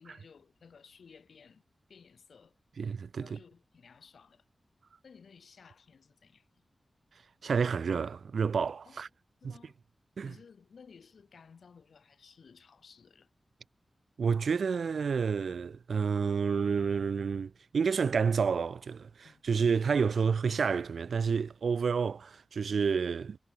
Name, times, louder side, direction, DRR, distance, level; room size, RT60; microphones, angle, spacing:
voice 1, 0.0-1.6 1.9-2.6 3.2-4.4 5.0-6.6 8.8-9.0 9.4-9.7 10.2-13.3 19.2-19.6, left 6 dB, 85° left, 3.2 m, -57 dB
voice 2, 2.8-3.4 7.4-9.1 9.4-9.5 10.2-10.3 14.2-23.4, right 6 dB, 85° right, 0.3 m, -29 dB
wide cardioid pair, 115°, 0 cm